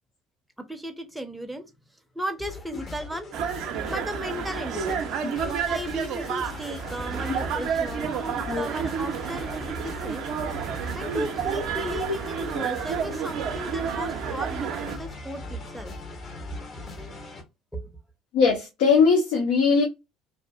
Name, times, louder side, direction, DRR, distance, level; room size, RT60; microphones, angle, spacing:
voice 1, 0.6-1.7 2.1-3.3 3.9-5.0 5.7-10.2 11.0-15.9 17.7-17.9, equal, 5° right, 0.6 m, -35 dB
sound 1, 2.4-17.4, left 2 dB, 40° left, 1.0 m, -40 dB
sound 2, 3.3-15.0, right 7 dB, 55° right, 0.4 m, -30 dB
voice 2, 18.3-19.8, left 5 dB, 70° left, 0.7 m, -20 dB
2.6 x 2.3 x 2.3 m
hypercardioid pair, 60°, 0 cm